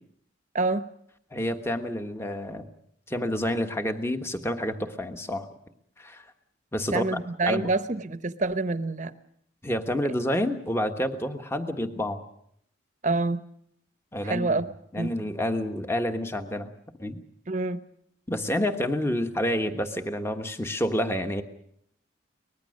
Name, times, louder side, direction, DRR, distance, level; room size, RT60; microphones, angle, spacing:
voice 1, 0.5-0.9 6.9-9.1 13.0-13.4 14.2-14.7 15.0-15.1 17.5-17.8, right 3 dB, 40° right, 12 dB, 1.0 m, -27 dB
voice 2, 1.3-2.7 3.1-5.5 6.0-6.2 6.7-7.2 7.5-7.7 9.6-12.2 14.1-14.6 14.9-16.7 17.0-17.2 18.3-21.4, left 1 dB, 15° left, 7 dB, 1.3 m, -29 dB
24.0 x 20.0 x 6.5 m, 0.71 s
head